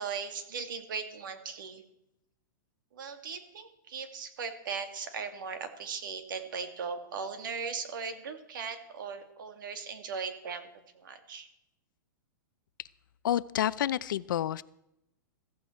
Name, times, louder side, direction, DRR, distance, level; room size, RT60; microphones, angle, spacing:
voice 1, 0.0-1.8 2.9-11.5, right 5 dB, 75° right, 7 dB, 2.3 m, -38 dB
voice 2, 13.2-14.6, left 11 dB, 75° left, 17 dB, 0.6 m, -29 dB
15.5 x 15.0 x 4.5 m, 0.82 s
supercardioid pair, 160°, 11 cm